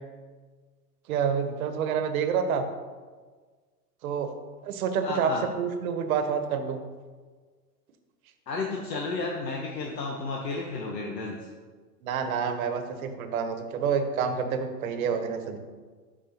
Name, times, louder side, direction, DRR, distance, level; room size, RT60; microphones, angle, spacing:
voice 1, 1.1-2.6 4.0-4.3 4.6-6.8 12.0-15.6, right 6 dB, 60° right, 7 dB, 1.1 m, -28 dB
voice 2, 5.0-5.5 8.5-11.4, left 3 dB, 80° left, 0 dB, 1.1 m, -32 dB
11.5 x 4.7 x 2.8 m, 1.5 s
hypercardioid pair, 115°, 49 cm